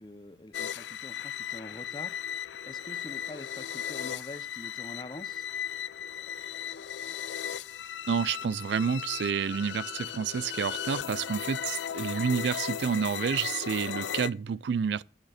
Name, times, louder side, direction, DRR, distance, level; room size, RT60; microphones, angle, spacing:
voice 1, 0.0-5.5, left 2 dB, 25° left, 0.7 m, -45 dB
sound 1, 0.5-14.3, left 9 dB, 75° left, 0.4 m, -36 dB
voice 2, 8.1-15.0, right 6 dB, 70° right, 0.4 m, -29 dB
8.9 x 6.4 x 4.9 m
head